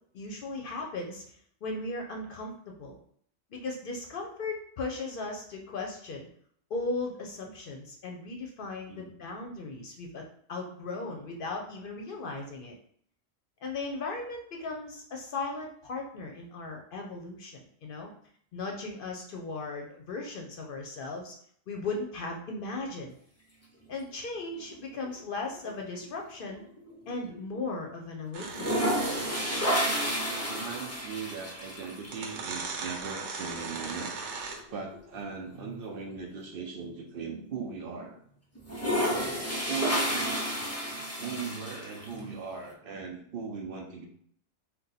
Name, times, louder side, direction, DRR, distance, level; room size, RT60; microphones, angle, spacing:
voice 1, 0.1-3.0 3.5-6.3 6.7-10.2 10.5-12.8 13.6-18.1 18.5-21.3 21.7-23.1 23.9-26.6 27.1-28.8, left 3 dB, 60° left, 2 dB, 0.6 m, -37 dB
sound 1, 24.4-25.2 25.5-27.6 27.8-27.9 28.4-32.1 33.6-33.7 34.1-34.2 34.5-36.9 37.4-37.5 38.5-42.2, equal, 25° left, 0.3 m, -31 dB
sound 2, 28.3-29.9 31.2-31.3 32.0-34.8, right 4 dB, 90° right, 1.0 m, -38 dB
voice 2, 30.3-34.1 34.7-38.2 39.6-40.4 41.2-44.1, right 5 dB, 60° right, 2 dB, 0.7 m, -38 dB
2.7 x 2.2 x 3.9 m, 0.63 s
omnidirectional pair, 1.2 m